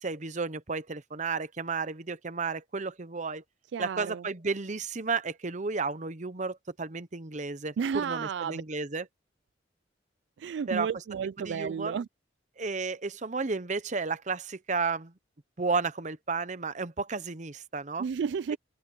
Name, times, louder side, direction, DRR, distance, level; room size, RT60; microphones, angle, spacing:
voice 1, 0.0-3.4 3.8-9.1 10.7-10.9 11.4-12.0 12.6-15.1 15.6-18.0, right 4 dB, 40° right, 0.9 m, -32 dB
voice 2, 3.7-4.2 7.8-8.6 10.4-12.1 18.0-18.6, right 6 dB, 65° right, 0.3 m, -32 dB
head